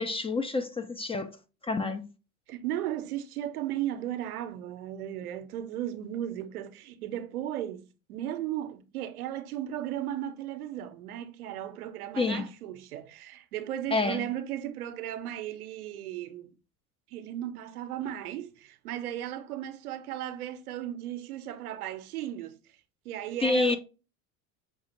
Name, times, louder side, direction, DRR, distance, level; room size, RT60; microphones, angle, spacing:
voice 1, 0.0-1.3 1.6-2.1 12.2-12.4 13.9-14.3 23.4-23.8, left 3 dB, 15° left, 0.3 m, -28 dB
voice 2, 2.5-16.5 17.1-22.6 23.0-23.8, right 12 dB, 85° right, 0.7 m, -36 dB
5.7 x 2.4 x 2.8 m
hypercardioid pair, 75°, 43 cm